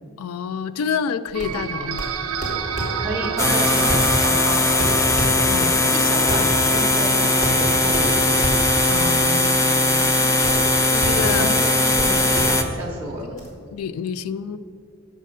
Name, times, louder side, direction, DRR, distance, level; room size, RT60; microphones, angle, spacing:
voice 1, 0.2-2.0 5.5-6.0 8.9-10.4 10.9-11.5 13.2-14.6, left 6 dB, 90° left, 15 dB, 0.4 m, -29 dB
sound 1, 1.3-13.5, equal, 35° left, 1.9 m, -29 dB
sound 2, 1.3-9.0, right 5 dB, 85° right, 0.6 m, -30 dB
voice 2, 3.0-4.8 5.6-8.3 11.4-13.4, right 1 dB, 10° right, -3 dB, 0.9 m, -31 dB
sound 3, 3.4-12.6, left 2 dB, 15° left, 0.4 m, -19 dB
7.5 x 6.4 x 5.3 m, 2.4 s
head